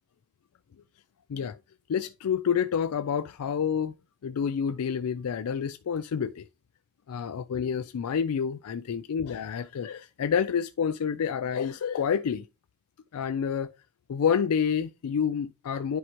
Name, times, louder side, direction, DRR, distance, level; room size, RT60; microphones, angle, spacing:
voice 1, 1.9-3.9 4.2-6.4 7.1-12.4 13.1-13.7 14.1-16.0, left 7 dB, 80° left, 0.4 m, -28 dB
10.0 x 4.7 x 3.0 m
head